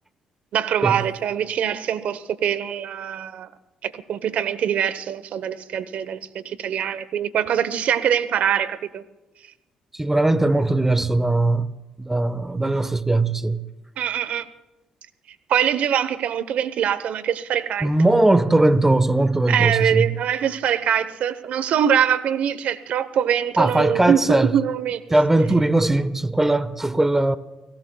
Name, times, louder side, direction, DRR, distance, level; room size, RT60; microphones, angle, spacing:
voice 1, 0.5-3.5 3.8-9.0 14.0-14.5 15.5-17.9 19.5-25.0, right 9 dB, 65° right, 1.0 m, -23 dB
voice 2, 9.9-11.7 12.0-13.6 17.8-20.1 23.6-24.5 25.1-27.4, right 2 dB, 15° right, 1.1 m, -19 dB
29.5 x 18.0 x 2.3 m
supercardioid pair, 60°, 3 cm